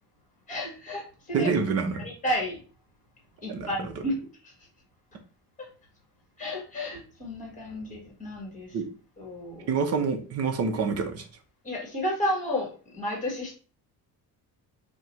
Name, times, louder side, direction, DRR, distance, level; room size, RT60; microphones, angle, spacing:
voice 1, 0.5-1.5 1.9-2.6 3.4-4.1 4.4-4.5 5.6-5.7 6.4-8.8 9.2-9.7 11.6-13.6, left 1 dB, 20° left, -1 dB, 1.5 m, -32 dB
voice 2, 1.3-2.0 3.5-3.7 4.0-4.1 8.7-8.9 9.7-11.3, right 5 dB, 40° right, 6 dB, 0.7 m, -27 dB
4.7 x 2.2 x 4.2 m, 0.37 s
cardioid pair, 170°, 40 cm